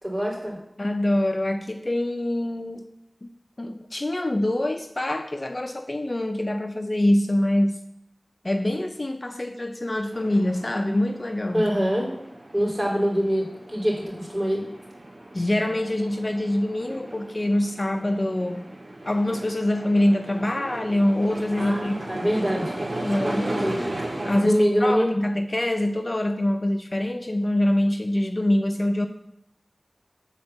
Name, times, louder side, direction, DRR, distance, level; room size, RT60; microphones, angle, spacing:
voice 1, 0.0-0.6 11.5-12.1 12.5-14.6 21.6-22.8 23.6-23.9 24.4-25.1, equal, 25° right, -2 dB, 3.6 m, -24 dB
voice 2, 0.8-2.9 3.2-3.3 3.6-7.8 8.4-11.7 15.3-18.7 19.1-22.2 22.9-23.7 24.2-29.1, left 1 dB, 45° left, 7 dB, 0.6 m, -25 dB
sound 1, 10.1-24.4, right 1 dB, 65° right, 2.1 m, -36 dB
8.2 x 4.5 x 6.8 m, 0.78 s
wide cardioid pair, 45°, 0 cm